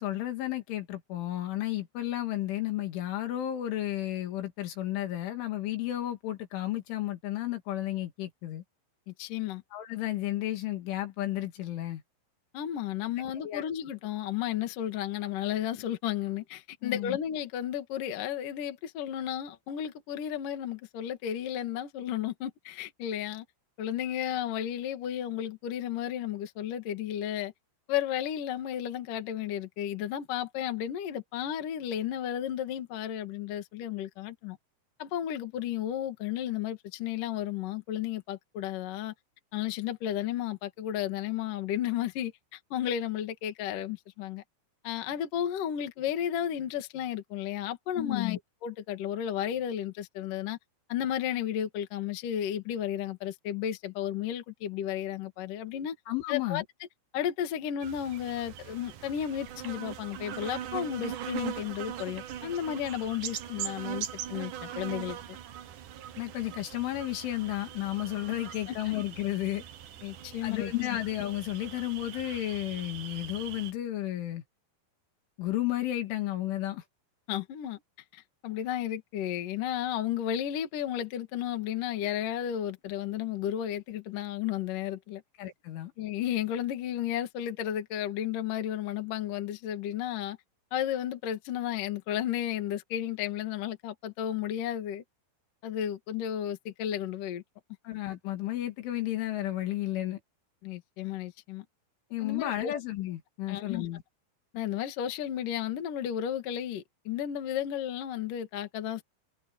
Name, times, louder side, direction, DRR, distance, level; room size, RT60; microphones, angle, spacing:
voice 1, 0.0-8.6 9.7-12.0 13.4-13.7 16.8-17.2 48.0-48.4 56.1-56.6 66.2-69.6 70.4-74.4 75.4-76.8 85.4-85.9 97.8-100.2 102.1-104.0, left 14 dB, 70° left, 4.6 m, -32 dB
voice 2, 9.1-9.6 12.5-23.4 23.8-27.5 27.9-34.6 35.0-39.1 39.5-44.4 44.8-50.6 50.9-56.0 56.3-56.6 57.1-65.2 68.7-68.9 70.0-70.7 77.3-77.8 78.1-85.2 86.0-90.4 90.7-95.0 95.6-97.4 100.6-101.6 102.2-102.7 103.5-103.9 104.5-109.0, left 10 dB, 55° left, 2.9 m, -33 dB
sound 1, 57.8-73.7, right 10 dB, 80° right, 1.8 m, -41 dB
omnidirectional pair, 5.8 m